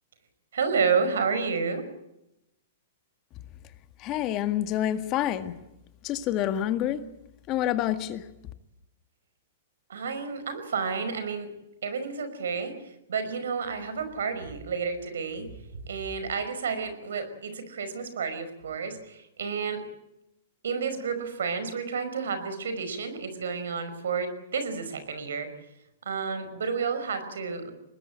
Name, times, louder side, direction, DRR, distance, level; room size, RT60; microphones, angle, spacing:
voice 1, 0.5-1.8 9.9-11.5 11.8-19.8 20.6-25.5 26.0-27.7, right 5 dB, 85° right, 10 dB, 5.3 m, -30 dB
voice 2, 4.0-5.5 6.0-7.0 7.5-8.2, left 12 dB, 35° left, 9 dB, 1.8 m, -27 dB
23.5 x 20.0 x 8.8 m, 0.86 s
hypercardioid pair, 135°, 0 cm